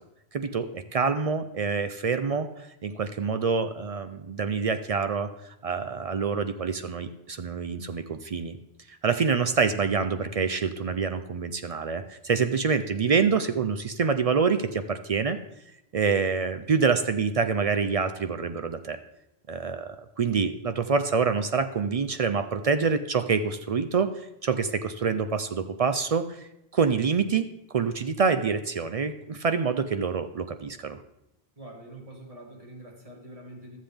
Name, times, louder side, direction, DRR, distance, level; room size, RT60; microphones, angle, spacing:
voice 1, 0.3-2.5 2.8-8.6 8.9-15.4 15.9-19.0 19.5-24.1 24.4-31.0, right 5 dB, 55° right, 9 dB, 0.4 m, -26 dB
voice 2, 31.6-33.8, right 1 dB, 35° right, -1 dB, 1.9 m, -45 dB
13.0 x 7.4 x 3.4 m, 0.88 s
omnidirectional pair, 1.1 m